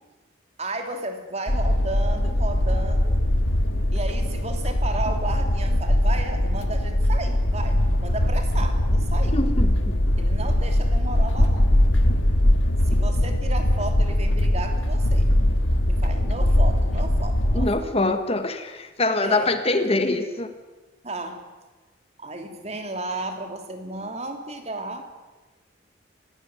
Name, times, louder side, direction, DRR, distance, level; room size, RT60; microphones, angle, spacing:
voice 1, 0.6-3.2 3.9-9.4 10.2-11.7 12.9-15.3 15.8-17.9 19.2-19.5 21.0-21.4 22.2-25.1, right 2 dB, 35° right, 6 dB, 3.0 m, -33 dB
sound 1, 1.5-17.7, left 1 dB, 85° left, 2.0 m, -21 dB
voice 2, 9.3-9.9 17.5-20.5, left 2 dB, 30° left, 9 dB, 1.5 m, -24 dB
24.5 x 17.0 x 9.7 m, 1.2 s
head